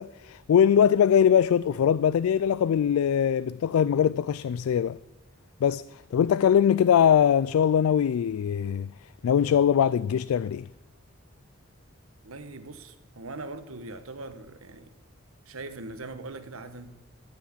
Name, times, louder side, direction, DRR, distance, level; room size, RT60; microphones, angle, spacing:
voice 1, 0.0-5.0 5.6-10.7, left 8 dB, 90° left, 0.3 m, -22 dB
voice 2, 12.2-14.9 15.5-16.9, right 2 dB, 85° right, 1.2 m, -41 dB
14.0 x 5.9 x 8.7 m
head